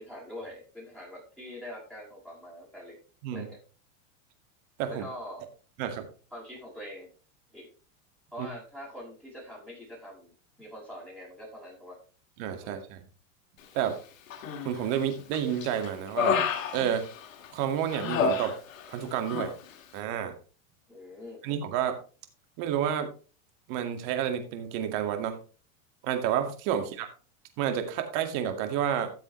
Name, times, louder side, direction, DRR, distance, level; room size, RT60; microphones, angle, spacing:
voice 1, 0.0-3.0 3.3-3.6 4.9-5.5 6.3-7.1 7.5-7.7 8.3-10.3 10.6-12.0 12.6-12.8 20.9-21.4 26.7-26.9, equal, ahead, -6 dB, 6.4 m, -44 dB
voice 2, 12.4-13.0 13.7-14.0 14.6-16.4 16.7-17.1 17.5-18.5 18.9-19.5 19.9-20.3 21.4-22.0 22.6-23.1 23.7-25.4 26.0-27.1 27.6-29.1, right 9 dB, 55° right, 7 dB, 2.1 m, -30 dB
Human voice, 14.3-14.9 15.3-17.5 17.9-19.0 19.2-19.5, left 6 dB, 85° left, 2.0 m, -30 dB
13.5 x 7.3 x 3.2 m, 0.37 s
supercardioid pair, 125°, 40 cm